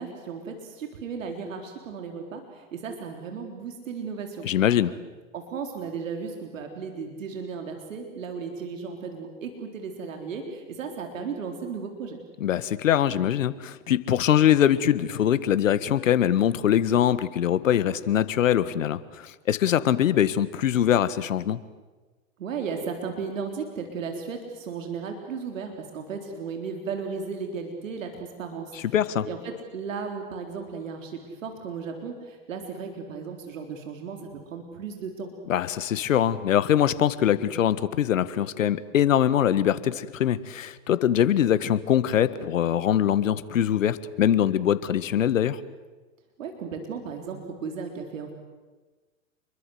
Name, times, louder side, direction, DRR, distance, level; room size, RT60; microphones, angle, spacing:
voice 1, 0.0-4.5 5.3-12.2 22.4-29.0 29.2-35.3 46.4-48.3, right 5 dB, 80° right, 4 dB, 3.9 m, -35 dB
voice 2, 4.4-4.9 12.4-21.6 28.9-29.3 35.5-45.6, left 10 dB, 80° left, 15 dB, 1.6 m, -23 dB
29.0 x 22.5 x 8.0 m, 1.3 s
hypercardioid pair, 105°, 39 cm